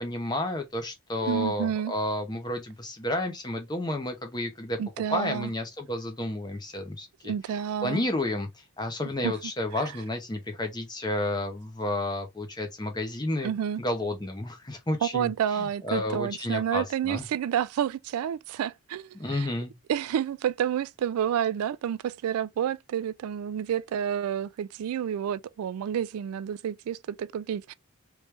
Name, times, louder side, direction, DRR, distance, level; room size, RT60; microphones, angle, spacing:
voice 1, 0.0-4.8 5.1-7.3 7.8-8.5 8.8-13.5 13.8-15.3 15.6-17.3 19.1-19.7, left 1 dB, 20° left, 0.8 m, -31 dB
voice 2, 1.3-1.9 4.8-5.5 7.2-8.1 9.2-9.3 9.8-9.9 13.4-13.8 15.0-19.5 19.9-27.7, right 9 dB, 90° right, 0.3 m, -29 dB
3.2 x 3.1 x 3.2 m
head